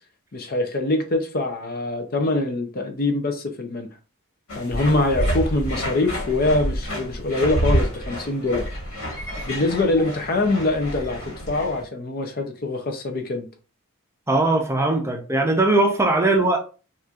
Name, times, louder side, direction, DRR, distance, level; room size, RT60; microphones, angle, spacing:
voice 1, 0.3-3.9 4.5-8.6 9.5-13.5, left 2 dB, 45° left, 0.5 m, -24 dB
sound 1, 4.5-11.8, equal, 70° left, 1.6 m, -28 dB
sound 2, 7.9-9.5, right 3 dB, 5° left, 1.1 m, -50 dB
voice 2, 14.3-16.6, right 2 dB, 10° right, 0.5 m, -20 dB
4.1 x 2.4 x 2.4 m
head